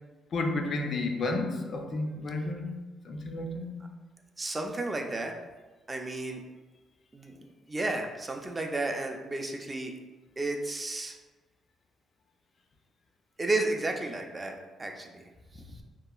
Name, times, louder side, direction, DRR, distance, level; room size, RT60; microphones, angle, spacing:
voice 1, 0.3-3.8, left 2 dB, 55° left, 0.3 m, -32 dB
voice 2, 4.4-5.4 5.9-6.4 7.1-9.9 10.4-11.2 13.4-15.2 15.5-15.8, right 2 dB, 25° right, 0.3 m, -33 dB
2.8 x 2.4 x 2.2 m
cardioid pair, 90°, 0 cm